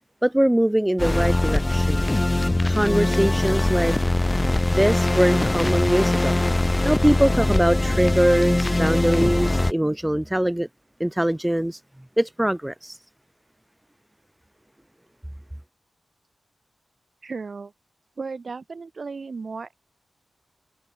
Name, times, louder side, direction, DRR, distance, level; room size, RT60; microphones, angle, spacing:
voice 1, 0.2-2.1 2.6-4.0 4.7-10.7 11.0-11.8 12.2-13.0, right 1 dB, 10° right, 0.7 m, -22 dB
sound 1, 1.0-9.7, left 2 dB, 25° left, 0.7 m, -21 dB
voice 2, 17.2-17.7 18.2-19.7, right 4 dB, 60° right, 2.7 m, -35 dB
cardioid pair, 45°, 0 cm